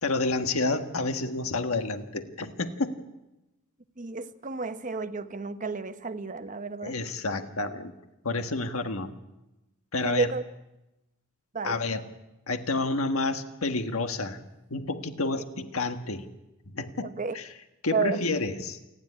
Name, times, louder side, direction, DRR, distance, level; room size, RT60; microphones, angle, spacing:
voice 1, 0.0-2.9 6.8-7.9 8.2-9.1 9.9-10.3 11.6-12.0 12.5-14.4 14.7-16.3 16.7-17.5 17.8-18.8, left 3 dB, 85° left, 7 dB, 1.5 m, -29 dB
voice 2, 4.0-6.9 10.0-10.4 11.5-11.8 17.0-17.4 17.9-18.2, right 4 dB, 40° right, 10 dB, 0.9 m, -31 dB
28.5 x 10.5 x 9.7 m, 0.98 s
head